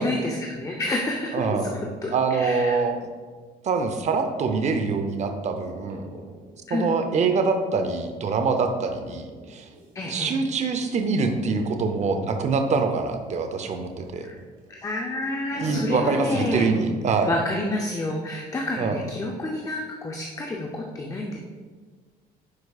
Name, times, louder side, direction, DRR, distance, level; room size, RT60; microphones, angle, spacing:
voice 1, 0.0-2.8 6.7-6.9 9.9-10.4 14.2-14.4 14.7-16.7 17.3-21.4, left 2 dB, 20° left, 0 dB, 0.6 m, -29 dB
voice 2, 1.3-1.7 2.1-3.0 3.6-6.1 6.7-9.7 10.1-14.3 15.6-17.3 18.8-19.0, right 4 dB, 45° right, 6 dB, 0.7 m, -24 dB
sound 1, 5.6-7.0 9.1-14.2 14.6-14.8 15.5-17.1, right 2 dB, 65° right, 1.8 m, -38 dB
9.7 x 4.6 x 2.4 m, 1.5 s
cardioid pair, 110°, 17 cm